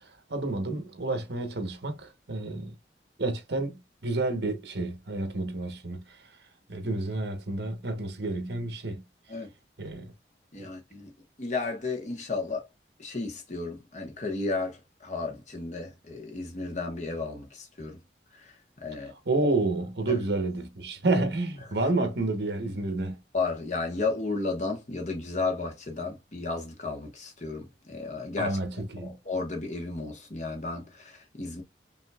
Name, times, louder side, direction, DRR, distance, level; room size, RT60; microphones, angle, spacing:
voice 1, 0.3-2.7 3.2-6.0 6.7-9.0 9.8-10.1 19.3-23.2 28.4-29.2, right 2 dB, 65° right, 1.0 m, -30 dB
voice 2, 10.5-11.1 11.4-12.7 13.0-18.0 18.3-19.1 20.1-20.2 21.1-21.2 21.6-21.7 23.3-28.6 29.0-31.6, left 3 dB, 40° left, 1.1 m, -33 dB
5.3 x 2.7 x 2.3 m
head